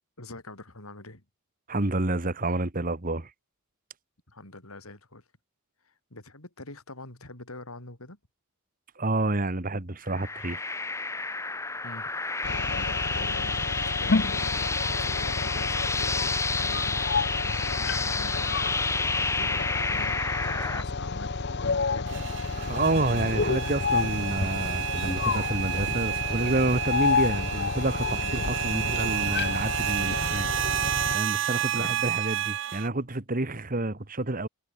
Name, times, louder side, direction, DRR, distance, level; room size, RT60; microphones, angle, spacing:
voice 1, 0.2-1.2 4.3-5.2 6.1-8.2 11.8-12.1 12.8-13.7 14.0-17.0 17.4-18.5 19.4-22.2 28.7-29.0 31.7-32.0, left 2 dB, 80° left, 5.3 m, -43 dB
voice 2, 1.7-3.3 9.0-10.7 22.6-30.5 31.1-34.5, right 2 dB, 40° right, 1.6 m, -29 dB
sound 1, 10.1-20.8, left 3 dB, 15° left, 1.0 m, -30 dB
sound 2, 12.4-31.2, left 4 dB, 50° left, 0.9 m, -30 dB
sound 3, 22.1-32.9, right 12 dB, 60° right, 0.5 m, -31 dB
head